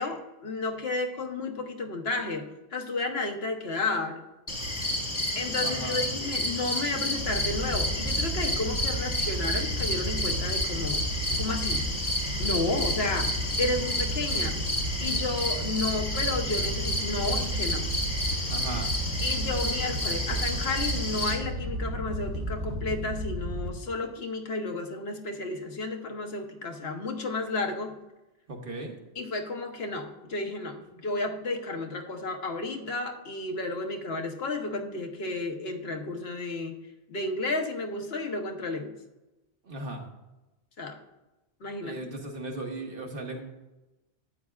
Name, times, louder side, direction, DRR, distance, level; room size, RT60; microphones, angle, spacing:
voice 1, 0.0-4.2 5.3-11.0 11.4-11.8 12.4-14.6 15.0-17.8 19.2-27.9 29.1-36.7 37.1-38.9 40.8-41.0 41.6-42.0, left 3 dB, 65° left, 3 dB, 1.2 m, -32 dB
sound 1, 4.5-21.4, left 1 dB, 35° left, 1.7 m, -30 dB
voice 2, 5.6-6.0 18.5-18.9 28.5-28.9 39.7-40.0 41.8-43.4, right 2 dB, 55° right, 1 dB, 1.5 m, -36 dB
Wind / Boat Water vehicle, 7.2-23.7, right 1 dB, 80° right, 1.7 m, -33 dB
12.5 x 8.5 x 2.4 m, 1.0 s
omnidirectional pair, 1.1 m